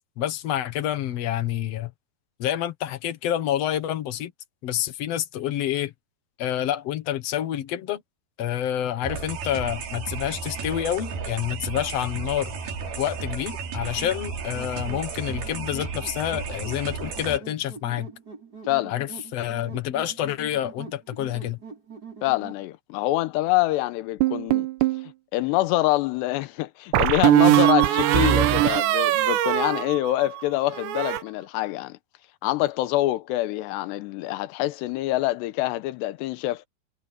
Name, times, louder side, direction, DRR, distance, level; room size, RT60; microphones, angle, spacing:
voice 1, 0.2-1.9 2.4-4.3 4.6-5.9 6.4-8.0 8.4-12.5 13.0-18.1 18.9-21.6, left 11 dB, 70° left, 1.5 m, -28 dB
sound 1, 9.0-17.4, right 5 dB, 60° right, 5.0 m, -33 dB
sound 2, 14.0-22.6, right 5 dB, 20° right, 7.1 m, -43 dB
voice 2, 22.2-24.7 25.3-32.0 32.4-36.6, left 17 dB, 90° left, 2.9 m, -25 dB
sound 3, 24.2-25.1 26.9-30.4 30.7-31.2, right 15 dB, 90° right, 3.4 m, -21 dB
omnidirectional pair, 4.9 m